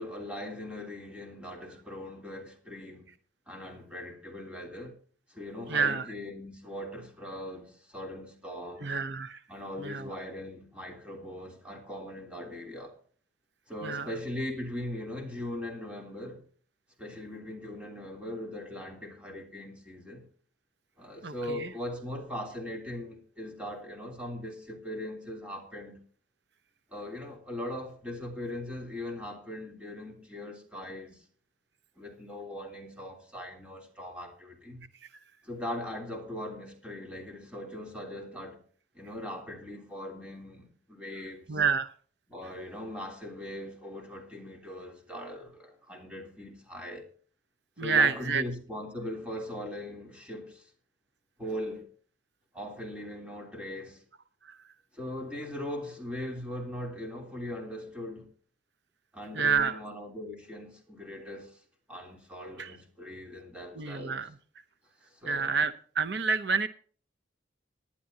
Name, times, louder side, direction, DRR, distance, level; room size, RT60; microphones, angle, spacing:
voice 1, 0.0-3.1 3.5-5.0 5.3-8.9 9.5-13.0 13.7-16.4 17.0-20.3 21.0-26.0 26.9-31.2 32.0-34.8 35.4-38.6 38.9-41.6 42.3-47.1 47.8-50.7 51.4-51.9 52.5-54.0 54.9-58.3 59.1-61.6 61.9-64.2 65.0-65.6, left 1 dB, 5° right, 3.3 m, -40 dB
voice 2, 5.7-6.1 8.8-9.4 9.8-10.1 13.8-14.1 21.2-21.7 41.5-41.9 47.8-48.4 54.4-54.6 59.3-59.8 62.6-62.7 63.7-64.3 65.3-66.7, right 5 dB, 65° right, 0.8 m, -28 dB
19.0 x 11.0 x 2.8 m
head